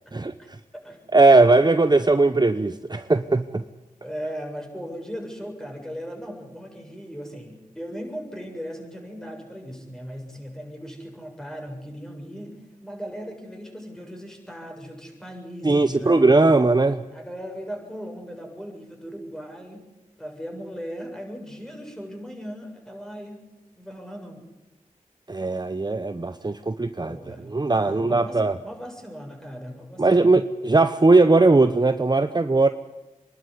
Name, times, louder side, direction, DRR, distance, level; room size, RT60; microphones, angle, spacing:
voice 1, 1.1-3.6 15.6-17.0 25.3-28.6 30.0-32.7, right 3 dB, 30° right, 11 dB, 0.9 m, -19 dB
voice 2, 4.0-16.4 17.1-19.8 20.2-23.4 23.8-24.4 27.0-30.4, equal, 5° left, 2 dB, 7.5 m, -38 dB
25.5 x 12.0 x 9.9 m, 1.1 s
cardioid pair, 40°, 14 cm